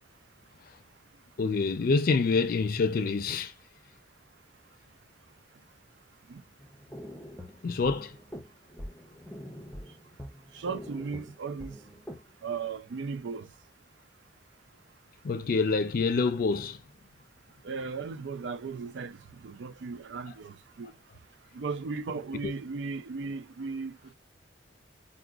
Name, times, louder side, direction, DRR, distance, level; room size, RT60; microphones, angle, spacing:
voice 1, 1.4-3.5 7.6-8.1 15.2-16.8 22.4-22.5, left 4 dB, 55° left, 0.4 m, -26 dB
sound 1, 6.6-12.3, equal, 5° left, 0.5 m, -45 dB
voice 2, 10.5-11.8 12.4-13.5 17.6-20.9 21.5-24.1, right 4 dB, 80° right, 0.4 m, -36 dB
4.8 x 2.2 x 2.3 m
head